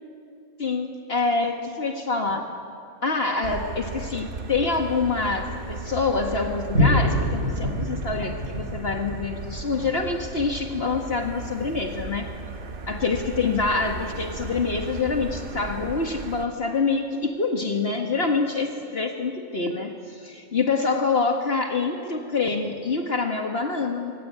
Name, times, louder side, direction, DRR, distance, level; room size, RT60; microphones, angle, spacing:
voice 1, 0.6-2.5 3.0-12.3 12.9-24.1, left 4 dB, 55° left, 3 dB, 1.8 m, -26 dB
Motor vehicle (road), 3.4-16.4, right 3 dB, 50° right, 1.2 m, -36 dB
Boom, 6.7-13.6 14.2-14.3, left 1 dB, 80° right, 7.0 m, -28 dB
25.0 x 24.5 x 9.4 m, 2.4 s
omnidirectional pair, 1.3 m